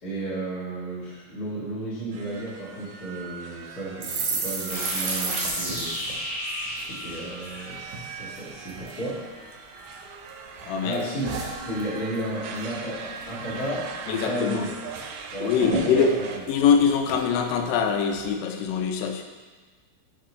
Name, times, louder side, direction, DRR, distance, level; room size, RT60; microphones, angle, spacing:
voice 1, 0.0-6.0 6.8-9.2 10.8-11.3 11.6-14.7 15.3-16.3, right 1 dB, 30° left, -8 dB, 1.8 m, -33 dB
sound 1, 2.1-16.4, right 5 dB, 85° right, 2.9 m, -41 dB
sound 2, 4.0-7.5 7.9-8.1 8.4-9.0 9.5-10.3 10.6-12.3 12.6-12.8 13.1-13.6 14.0-14.1 14.4-15.0 15.3-15.4 15.6-17.5 18.0-18.3, right 4 dB, 65° right, 2.0 m, -33 dB
sound 3, 4.7-8.2, left 1 dB, 65° left, 4.8 m, -33 dB
voice 2, 10.7-11.1 14.1-14.7 15.4-16.2 16.5-19.2, left 6 dB, 85° left, 4 dB, 3.0 m, -23 dB
13.5 x 4.9 x 3.1 m, 1.4 s
omnidirectional pair, 5.3 m